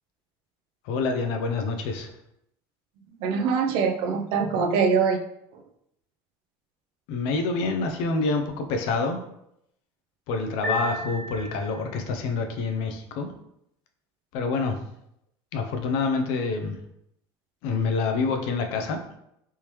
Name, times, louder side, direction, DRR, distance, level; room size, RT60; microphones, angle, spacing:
voice 1, 0.9-2.1 7.1-9.2 10.3-13.3 14.3-14.8 15.5-16.8 17.6-19.0, left 4 dB, 70° left, 5 dB, 0.5 m, -27 dB
voice 2, 3.2-5.2, right 5 dB, 65° right, 4 dB, 0.5 m, -23 dB
sound 1, 10.6-12.1, left 1 dB, ahead, 1.2 m, -33 dB
3.4 x 3.0 x 3.0 m, 0.78 s
cardioid pair, 150°, 9 cm